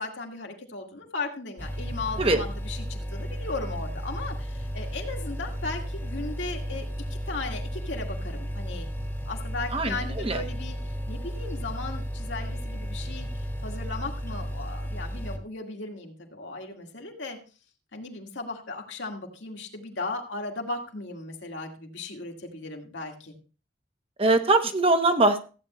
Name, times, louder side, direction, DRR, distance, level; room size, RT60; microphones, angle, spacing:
voice 1, 0.0-6.9 7.3-8.9 9.3-10.8 11.1-17.4 17.9-23.3, left 3 dB, 70° left, 2 dB, 2.2 m, -36 dB
sound 1, 1.6-15.4, equal, 15° left, 1.5 m, -34 dB
voice 2, 9.7-10.4 24.2-25.4, right 2 dB, 30° right, 6 dB, 1.1 m, -22 dB
15.0 x 8.8 x 3.1 m, 0.35 s
head